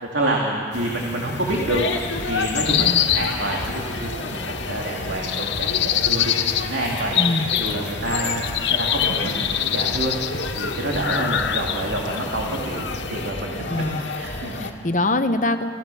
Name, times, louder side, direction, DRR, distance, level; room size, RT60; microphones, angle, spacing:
voice 1, 0.0-2.9 3.1-4.4 4.7-6.3 6.6-7.2 7.5-8.4 8.8-10.1 10.6-12.8 13.1-13.8 14.1-14.7, right 1 dB, 80° right, -2 dB, 2.6 m, -27 dB
sound 1, 0.7-13.3, left 9 dB, 65° left, 0.9 m, -26 dB
sound 2, 1.4-14.7, left 2 dB, 85° left, 2.0 m, -31 dB
voice 2, 2.7-3.0 7.2-7.5 13.7-14.1 14.6-15.7, left 2 dB, 40° left, 8 dB, 1.1 m, -23 dB
27.5 x 16.5 x 7.0 m, 2.2 s
head